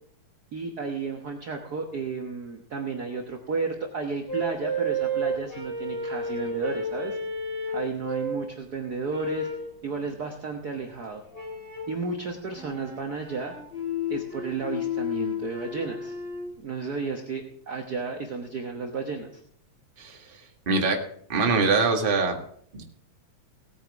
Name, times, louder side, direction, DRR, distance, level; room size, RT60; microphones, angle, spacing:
voice 1, 0.5-7.2 7.7-9.5 9.8-11.2 11.9-13.5 14.1-16.1 16.6-19.4, right 4 dB, 60° right, 2 dB, 1.0 m, -32 dB
sound 1, 4.3-8.5 9.1-9.7 11.3-12.0 12.5-16.5, equal, 20° left, 3.3 m, -32 dB
voice 2, 20.0-20.4 20.7-21.0 21.3-22.4 22.7-22.8, right 4 dB, 30° right, 3 dB, 1.1 m, -23 dB
18.0 x 9.3 x 3.5 m, 0.63 s
omnidirectional pair, 3.5 m